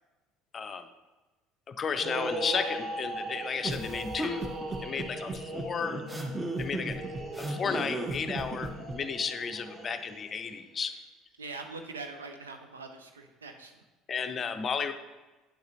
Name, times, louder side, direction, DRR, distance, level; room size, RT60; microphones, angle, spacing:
voice 1, 0.5-0.9 1.7-4.5 4.8-6.0 6.6-7.0 7.4-11.0 14.1-14.9, left 6 dB, 35° left, 9 dB, 0.5 m, -33 dB
sound 1, 1.9-10.5, right 1 dB, 35° right, 1.1 m, -39 dB
sound 2, 3.6-9.0, right 2 dB, 15° right, 0.8 m, -35 dB
voice 2, 11.4-13.7, right 3 dB, 80° right, 5 dB, 0.6 m, -42 dB
8.5 x 7.7 x 2.6 m, 1.2 s
figure-of-eight pair, 60°, 0 cm